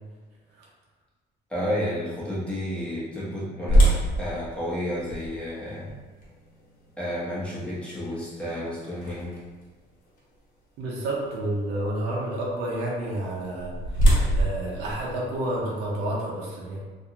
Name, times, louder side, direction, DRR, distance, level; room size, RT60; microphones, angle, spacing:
voice 1, 1.5-5.9 7.0-9.4, equal, 5° left, -8 dB, 0.9 m, -31 dB
sound 1, 3.7-9.6 10.2-10.3 10.9-11.1 13.2-15.8, right 1 dB, 55° left, 1.0 m, -25 dB
voice 2, 10.8-14.0 14.3-16.8, right 1 dB, 90° right, -3 dB, 0.7 m, -30 dB
2.5 x 2.3 x 2.8 m, 1.4 s
cardioid pair, 110°, 17 cm